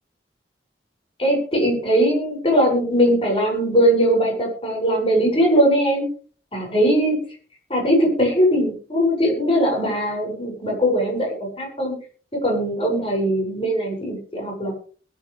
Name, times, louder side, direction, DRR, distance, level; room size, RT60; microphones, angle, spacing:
voice 1, 1.2-6.1 6.5-7.2 7.7-11.9 12.4-14.7, equal, 30° left, 0 dB, 7.9 m, -20 dB
21.5 x 11.5 x 3.7 m, 0.42 s
head